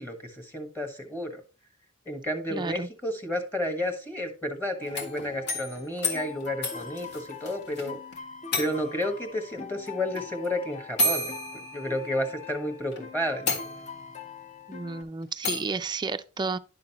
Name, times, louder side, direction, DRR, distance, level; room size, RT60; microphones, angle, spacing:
voice 1, 0.0-1.4 2.1-8.0 8.6-13.6, left 1 dB, 10° left, 1.3 m, -32 dB
voice 2, 2.5-2.9 14.7-16.6, right 4 dB, 20° right, 0.4 m, -32 dB
sound 1, 4.8-8.2 8.5-9.1 10.2-10.3 11.0-12.4 12.9-13.0 13.5-14.2 15.4-15.8, left 1 dB, 55° left, 1.7 m, -31 dB
sound 2, 4.8-15.0, left 6 dB, 35° left, 0.9 m, -43 dB
10.5 x 6.4 x 2.9 m
head